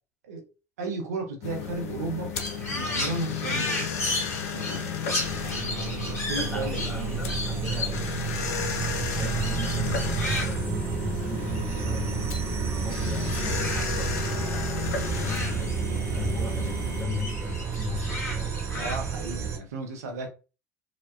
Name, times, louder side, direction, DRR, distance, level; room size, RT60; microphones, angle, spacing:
voice 1, 0.8-2.3 2.7-3.9 4.5-4.9 5.4-6.9 18.7-20.3, right 2 dB, 70° right, 0.8 m, -34 dB
sound 1, 1.4-17.0, left 6 dB, 65° left, 0.6 m, -33 dB
Crow, 2.3-13.0 13.3-16.3 16.6-19.3, left 2 dB, 30° left, 1.9 m, -35 dB
voice 2, 4.5-5.0 6.2-8.3 8.8-12.5 12.7-15.8 16.1-18.5, left 4 dB, 10° left, 1.5 m, -37 dB
sound 2, 5.2-19.6, right 7 dB, 30° right, 1.1 m, -31 dB
4.9 x 2.1 x 2.4 m
figure-of-eight pair, 70°, 9 cm